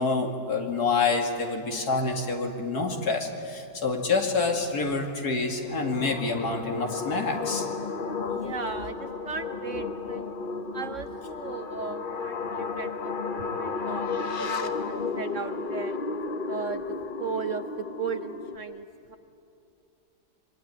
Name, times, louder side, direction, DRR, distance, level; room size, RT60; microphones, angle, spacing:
voice 1, 0.0-7.7, left 4 dB, 60° left, 3 dB, 2.8 m, -27 dB
sound 1, 5.5-18.6, left 4 dB, 35° left, 1.0 m, -33 dB
voice 2, 8.3-10.3 10.7-14.1 14.4-15.9 16.5-16.8 17.2-19.2, right 5 dB, 55° right, 9 dB, 1.0 m, -36 dB
26.0 x 23.5 x 9.7 m, 2.7 s
omnidirectional pair, 1.9 m